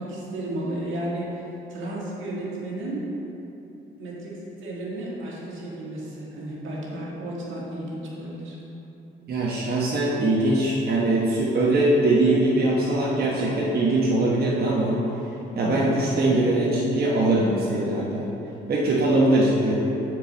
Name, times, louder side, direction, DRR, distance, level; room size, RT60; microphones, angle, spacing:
voice 1, 0.0-3.1 4.0-8.6 15.6-16.0, right 1 dB, 75° right, -5 dB, 1.7 m, -33 dB
voice 2, 9.3-15.0 15.5-18.3 18.7-19.8, right 2 dB, 50° right, -5 dB, 1.0 m, -21 dB
8.7 x 4.6 x 4.0 m, 3.0 s
cardioid pair, 90°, 20 cm